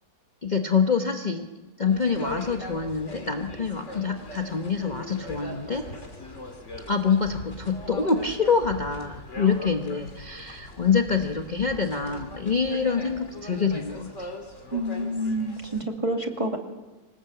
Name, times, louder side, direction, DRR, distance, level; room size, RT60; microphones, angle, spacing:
voice 1, 0.4-1.5 1.8-5.9 6.9-14.3, left 5 dB, 30° left, 4 dB, 1.1 m, -26 dB
sound 1, 1.9-15.8, left 1 dB, 50° left, 3.3 m, -40 dB
voice 2, 14.7-16.6, right 1 dB, 20° right, 3 dB, 2.2 m, -28 dB
26.0 x 18.5 x 7.9 m, 1.1 s
omnidirectional pair, 1.6 m